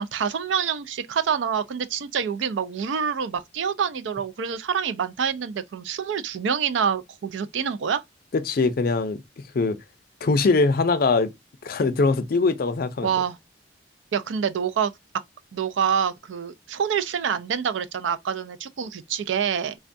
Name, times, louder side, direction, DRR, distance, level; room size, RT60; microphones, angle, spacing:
voice 1, 0.0-8.0 13.0-13.4 14.1-14.9 15.5-19.8, right 7 dB, 80° right, 0.4 m, -26 dB
voice 2, 8.5-9.2 9.5-9.8 10.2-11.3 11.6-13.1, left 3 dB, 50° left, 0.4 m, -22 dB
3.4 x 2.2 x 2.5 m
head